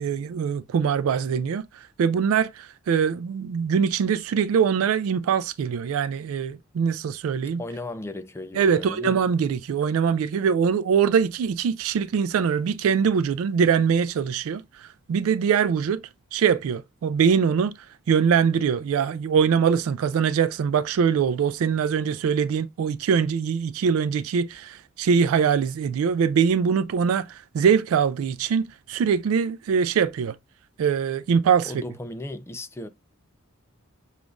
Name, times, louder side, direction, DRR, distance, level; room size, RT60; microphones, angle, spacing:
voice 1, 0.0-7.6 8.5-16.0 16.3-17.8 18.1-30.4 30.8-31.7, right 6 dB, 85° right, 0.3 m, -23 dB
voice 2, 7.6-9.2 31.7-32.9, left 2 dB, 10° left, 0.4 m, -35 dB
6.9 x 2.4 x 2.4 m
head